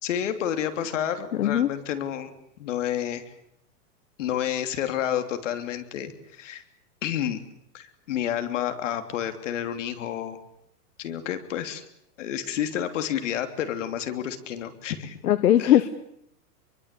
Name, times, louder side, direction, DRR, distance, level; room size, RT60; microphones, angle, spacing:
voice 1, 0.0-2.3 2.6-3.3 4.2-6.6 7.0-7.4 7.7-10.4 11.0-11.8 12.2-15.2 15.6-15.8, left 10 dB, 55° left, 8 dB, 3.3 m, -30 dB
voice 2, 1.3-1.7 15.2-15.9, left 12 dB, 80° left, 12 dB, 1.7 m, -19 dB
25.5 x 23.5 x 8.5 m, 0.74 s
supercardioid pair, 180°, 45 cm